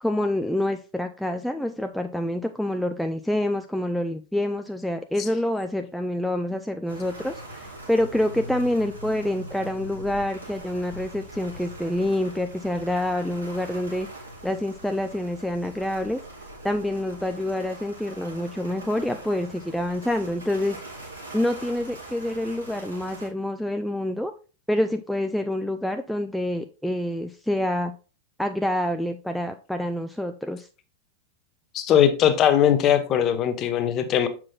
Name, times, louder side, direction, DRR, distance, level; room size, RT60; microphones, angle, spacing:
voice 1, 0.0-14.1 14.4-16.2 16.6-20.8 21.3-24.3 24.7-27.9 28.4-30.7, left 1 dB, ahead, 0.4 m, -27 dB
sound 1, 6.9-23.3, right 1 dB, 85° right, 2.7 m, -42 dB
voice 2, 31.7-34.3, left 9 dB, 30° left, 0.9 m, -20 dB
7.3 x 6.0 x 2.3 m
figure-of-eight pair, 90°, 0 cm